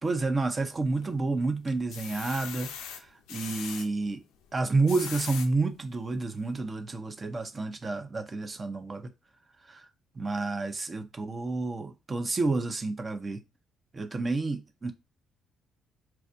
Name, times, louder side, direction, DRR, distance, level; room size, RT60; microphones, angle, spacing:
voice 1, 0.0-4.2 4.5-9.1 9.7-9.8 10.2-13.4 13.9-14.9, right 3 dB, 35° right, 0.7 m, -30 dB
arisole spray can, 0.6-1.2 1.7-3.9 4.6-5.5 6.1-6.2 6.5-6.6, left 8 dB, 75° left, 0.4 m, -40 dB
4.4 x 2.3 x 2.5 m
hypercardioid pair, 50°, 0 cm